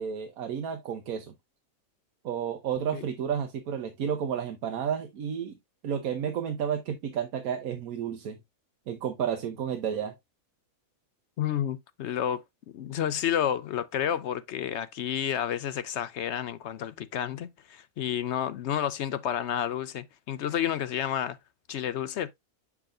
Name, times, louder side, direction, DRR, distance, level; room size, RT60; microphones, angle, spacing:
voice 1, 0.0-1.3 2.2-5.6 5.8-8.4 8.9-10.2, right 8 dB, 90° right, 1.3 m, -31 dB
voice 2, 11.4-12.4 12.7-21.4 21.7-22.3, left 10 dB, 65° left, 0.7 m, -30 dB
7.0 x 6.0 x 2.4 m
omnidirectional pair, 1.5 m